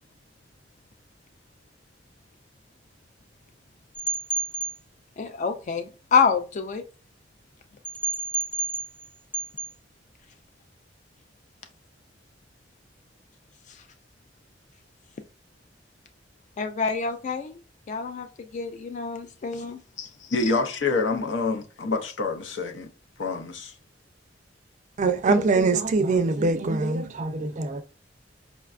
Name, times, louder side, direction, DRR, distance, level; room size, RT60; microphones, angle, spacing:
sound 1, 3.9-4.7 7.8-9.1 9.3-9.7, right 3 dB, 5° left, 0.8 m, -29 dB
voice 1, 5.2-6.8 13.7-13.8 16.6-17.6 17.9-18.3 18.5-20.3, left 5 dB, 40° left, 0.3 m, -27 dB
voice 2, 20.3-22.9 23.2-23.7, left 3 dB, 90° left, 0.7 m, -27 dB
voice 3, 25.0-27.8, right 3 dB, 40° right, 0.4 m, -23 dB
5.2 x 2.2 x 2.4 m
head